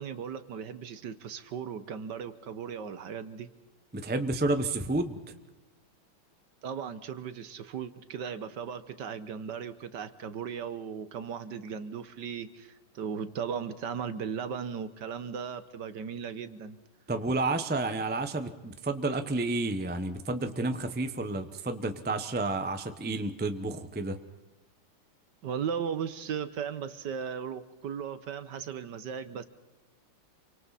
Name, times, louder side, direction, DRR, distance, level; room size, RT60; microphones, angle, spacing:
voice 1, 0.0-3.5 6.6-16.8 25.4-29.4, right 7 dB, 60° right, 12 dB, 1.4 m, -37 dB
voice 2, 3.9-5.2 17.1-24.2, right 2 dB, 15° right, 8 dB, 0.4 m, -30 dB
28.0 x 25.0 x 4.2 m, 1.1 s
omnidirectional pair, 2.3 m